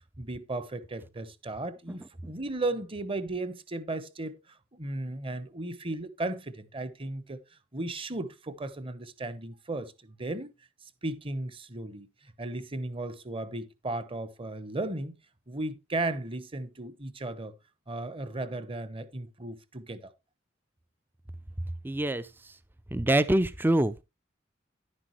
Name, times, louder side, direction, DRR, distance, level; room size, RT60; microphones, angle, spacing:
voice 1, 0.2-7.4 7.7-10.5 11.0-15.1 15.5-17.5 17.9-20.1, right 2 dB, 30° right, 1.0 m, -35 dB
voice 2, 21.8-22.2 22.9-24.0, right 1 dB, 10° right, 0.4 m, -24 dB
11.0 x 9.9 x 3.0 m
head